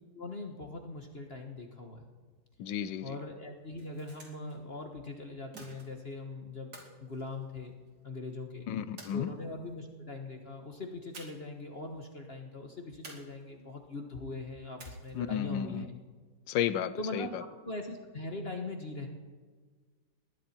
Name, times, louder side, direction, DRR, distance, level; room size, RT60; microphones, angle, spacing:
voice 1, 0.1-2.1 3.0-7.8 8.0-8.7 9.1-15.9 17.0-17.3 17.6-19.1, left 2 dB, 35° left, 3 dB, 1.6 m, -41 dB
voice 2, 2.6-3.2 8.7-9.3 15.1-15.9 16.5-17.3, left 9 dB, 85° left, 14 dB, 1.5 m, -33 dB
sound 1, 3.6-4.6 5.5-6.2 6.7-8.0 9.0-9.7 11.1-11.6 11.9-12.0 13.0-13.8 14.8-15.3, right 2 dB, 70° right, 3.7 m, -51 dB
20.5 x 15.0 x 4.5 m, 1.5 s
omnidirectional pair, 2.0 m